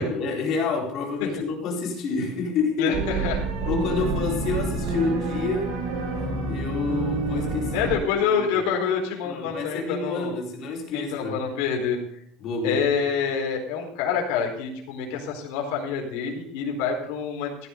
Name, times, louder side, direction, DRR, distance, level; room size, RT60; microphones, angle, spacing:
voice 1, 0.0-3.0 3.6-5.7 6.5-7.9 8.2-8.6 9.2-11.5 12.4-12.8, left 4 dB, 40° left, -1 dB, 4.2 m, -28 dB
voice 2, 2.8-4.1 7.7-10.4 10.9-12.0 12.6-17.5, left 6 dB, 80° left, 0 dB, 4.2 m, -27 dB
sound 1, 2.9-8.0, right 3 dB, 75° right, 4.2 m, -28 dB
16.0 x 11.0 x 3.9 m, 0.70 s
cardioid pair, 175°, 0 cm